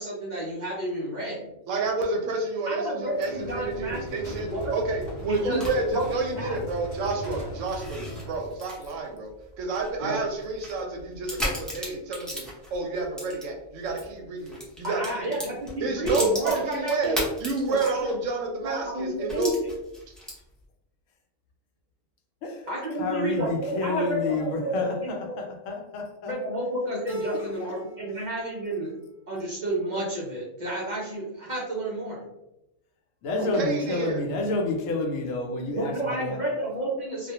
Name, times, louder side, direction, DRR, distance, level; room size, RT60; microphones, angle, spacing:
voice 1, 0.0-1.5 2.7-4.6 5.4-5.6 5.9-6.0 6.4-6.6 10.0-10.2 14.8-17.2 17.7-18.1 18.6-19.5 22.7-25.1 26.2-29.0 29.3-32.3 35.8-37.3, right 1 dB, 55° right, -6 dB, 0.5 m, -31 dB
voice 2, 1.7-19.5 20.1-20.2 33.4-34.2, right 3 dB, 75° right, 2 dB, 0.9 m, -30 dB
sound 1, 3.1-8.6, equal, 45° left, 0.7 m, -39 dB
sound 2, 4.8-14.1 14.4-18.3 18.6-18.7 19.3-20.6, equal, ahead, 0.4 m, -37 dB
voice 3, 23.0-26.3 27.3-27.7 33.2-36.4, left 2 dB, 75° left, 2 dB, 0.9 m, -29 dB
Keyboard (musical), 27.1-28.2 28.5-29.2, left 1 dB, 30° right, 0.8 m, -38 dB
2.4 x 2.1 x 2.7 m, 0.87 s
omnidirectional pair, 1.4 m